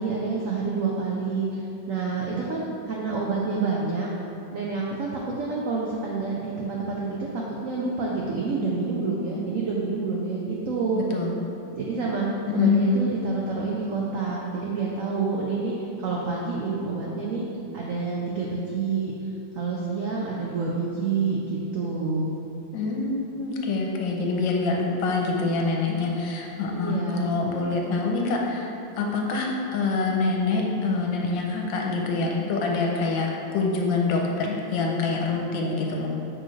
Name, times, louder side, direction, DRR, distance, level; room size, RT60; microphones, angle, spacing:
voice 1, 0.0-2.6 2.9-4.1 4.5-7.3 7.6-11.1 11.7-12.3 12.5-17.4 17.7-19.1 19.5-22.3 26.7-27.4, right 4 dB, 90° right, -3 dB, 0.7 m, -28 dB
voice 2, 10.9-11.3 12.5-13.0 22.7-28.7 29.0-36.1, left 3 dB, 75° left, 0 dB, 1.4 m, -25 dB
6.3 x 5.1 x 3.2 m, 2.7 s
omnidirectional pair, 2.2 m